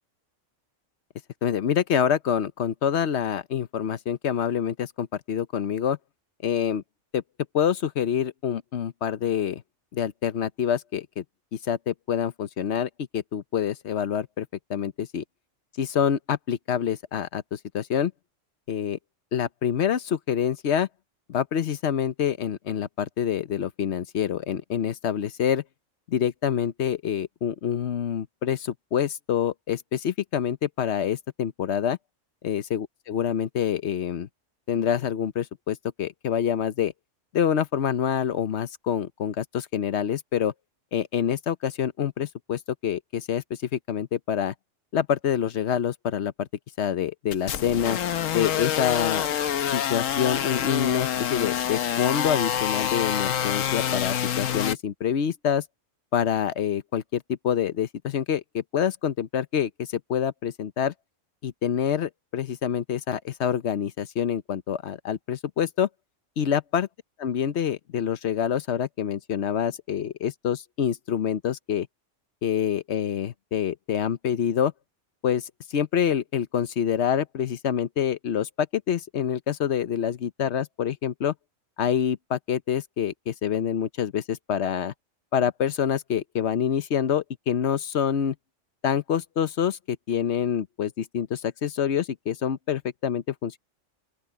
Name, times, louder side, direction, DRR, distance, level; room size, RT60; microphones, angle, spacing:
voice 1, 1.4-6.0 6.4-6.8 7.1-7.2 7.5-9.6 9.9-11.2 11.5-15.2 15.8-18.1 18.7-19.0 19.3-20.9 21.3-25.6 26.1-32.0 32.4-34.3 34.7-36.9 37.3-40.5 40.9-44.5 44.9-46.5 46.8-48.0 48.3-49.3 49.7-55.6 56.1-60.9 61.4-65.9 66.4-66.9 67.2-71.9 72.4-74.7 75.2-81.3 81.8-84.9 85.3-88.3 88.8-93.6, left 8 dB, 65° left, 1.1 m, -26 dB
sound 1, 47.3-54.7, left 9 dB, 85° left, 1.2 m, -27 dB
open air
omnidirectional pair, 1.3 m